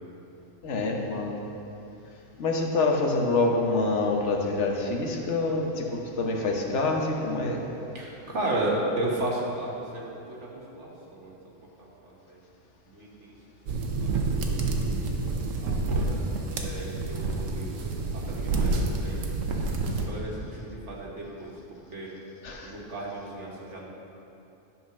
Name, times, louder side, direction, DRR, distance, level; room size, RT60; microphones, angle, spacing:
voice 1, 0.6-1.4 2.4-7.6 22.4-22.7, left 3 dB, 65° left, 1 dB, 1.2 m, -26 dB
voice 2, 7.9-11.3 11.8-12.4 12.9-13.3 14.0-14.1 14.4-14.9 15.6-16.2 16.6-17.7 18.1-19.2 20.0-22.1 22.6-23.8, right 1 dB, 65° right, -3 dB, 1.6 m, -34 dB
sound 1, 13.7-20.0, right 3 dB, 85° right, 1.2 m, -28 dB
11.0 x 4.1 x 5.9 m, 2.9 s
omnidirectional pair, 1.3 m